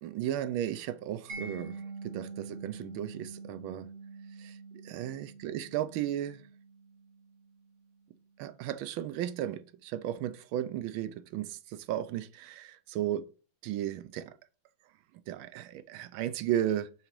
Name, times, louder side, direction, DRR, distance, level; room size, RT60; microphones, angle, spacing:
voice 1, 0.0-3.9 4.4-4.6 4.8-6.4 8.4-13.3 13.6-14.3 15.3-16.9, right 11 dB, 90° right, 1.4 m, -35 dB
Mallet percussion, 1.3-8.1, right 4 dB, 35° right, 1.5 m, -45 dB
5.8 x 3.8 x 4.5 m
omnidirectional pair, 2.2 m